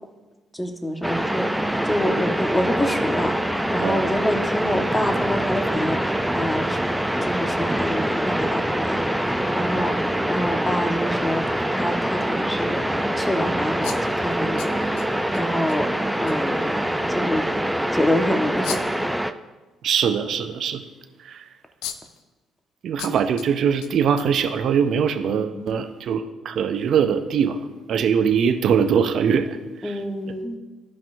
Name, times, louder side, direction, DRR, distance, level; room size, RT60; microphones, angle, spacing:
voice 1, 0.5-1.5 1.8-6.8 7.2-11.5 11.7-12.8 13.2-15.1 15.4-16.8 17.1-17.5 17.9-18.8 25.3-25.7 29.8-30.6, equal, 15° left, 4 dB, 1.4 m, -27 dB
sound 1, 1.0-19.3, right 1 dB, 5° right, 0.5 m, -24 dB
sound 2, 13.8-15.4 15.7-15.8 16.3-16.4 18.6-19.1 21.3-21.4 21.8-22.2 23.0-23.5 23.8-24.8, left 9 dB, 75° left, 0.5 m, -36 dB
voice 2, 19.8-20.8 21.2-21.4 22.8-27.6 27.9-29.6 29.8-29.9, right 7 dB, 60° right, 8 dB, 0.6 m, -22 dB
15.0 x 5.2 x 2.7 m, 1.2 s
hypercardioid pair, 50°, 0 cm